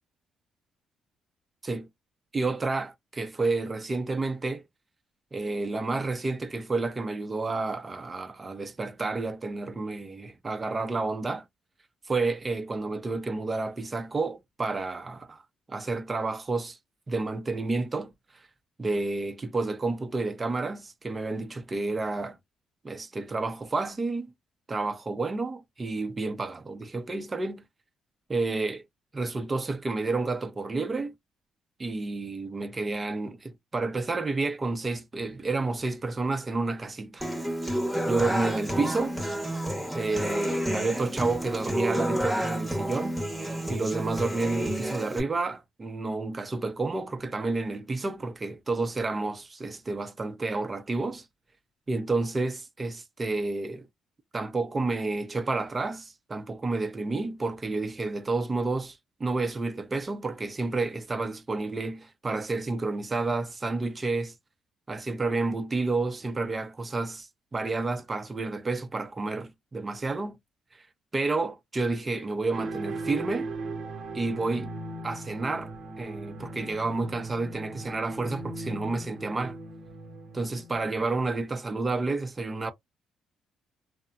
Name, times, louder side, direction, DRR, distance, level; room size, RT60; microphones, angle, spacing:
voice 1, 2.3-4.6 5.3-11.4 12.1-15.4 15.7-16.8 17.1-18.1 18.8-22.4 22.8-24.3 24.7-27.6 28.3-28.8 29.1-31.1 31.8-37.3 38.1-39.2 39.9-43.2 43.7-51.2 51.9-53.9 54.3-64.3 64.9-70.4 70.7-70.8 71.1-73.5 74.1-74.7 75.0-75.7 76.0-79.6 80.3-82.7, right 3 dB, 25° right, 0.7 m, -30 dB
Human voice / Acoustic guitar, 37.2-45.2, right 1 dB, ahead, 1.0 m, -30 dB
sound 1, 72.5-81.0, right 2 dB, 70° right, 0.8 m, -38 dB
2.9 x 2.1 x 2.5 m
cardioid pair, 90°, 0 cm